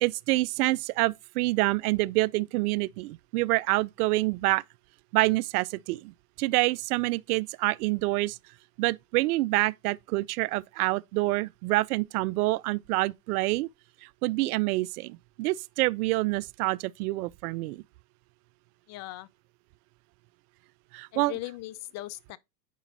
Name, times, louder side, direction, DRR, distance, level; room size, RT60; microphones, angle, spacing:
voice 1, 0.0-4.6 5.1-6.1 6.4-8.4 8.8-13.7 14.0-17.8 20.9-21.4, right 21 dB, 65° right, 0.5 m, -27 dB
voice 2, 18.9-19.3 21.1-22.4, left 17 dB, 35° left, 0.5 m, -39 dB
9.3 x 5.0 x 2.6 m
hypercardioid pair, 105°, 48 cm